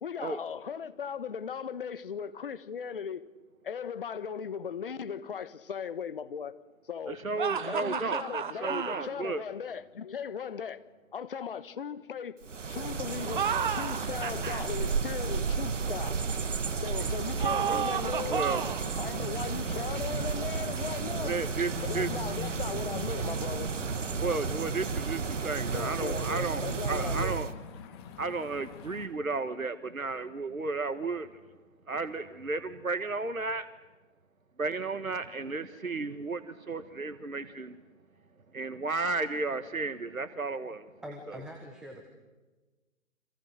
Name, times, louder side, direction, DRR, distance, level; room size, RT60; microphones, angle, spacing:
voice 1, 0.0-3.2 3.6-6.5 6.9-7.2 7.6-10.8 11.1-12.4 12.7-16.2 16.8-18.5 19.0-21.3 21.8-23.7 25.7-27.4, left 7 dB, 40° left, 1.4 m, -38 dB
voice 2, 7.1-8.2 8.6-9.4 17.7-17.9 18.2-18.7 21.2-22.1 24.2-27.5 28.2-31.3 31.9-33.7 34.6-37.8 38.5-40.9, right 3 dB, 85° right, 1.6 m, -33 dB
sound 1, 7.4-9.1 13.2-14.6 17.4-18.9, right 7 dB, 40° right, 1.6 m, -32 dB
sound 2, 12.4-27.5, right 5 dB, 65° right, 1.5 m, -33 dB
sound 3, 16.9-29.1, left 8 dB, 20° left, 2.3 m, -46 dB
voice 3, 41.0-42.1, equal, ahead, 1.3 m, -43 dB
30.0 x 26.5 x 6.7 m
figure-of-eight pair, 150°, 40 cm